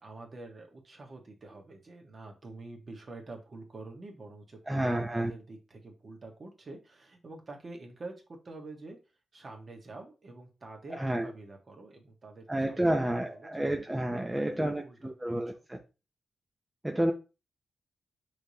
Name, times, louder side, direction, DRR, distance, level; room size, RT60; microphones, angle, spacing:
voice 1, 0.0-9.0 9.3-13.5 14.1-15.6, right 2 dB, 40° right, 1.3 m, -47 dB
voice 2, 4.7-5.3 10.9-11.3 12.5-15.8 16.8-17.1, right 1 dB, 10° right, 0.5 m, -30 dB
5.6 x 3.3 x 2.7 m
wide cardioid pair, 115°, 0 cm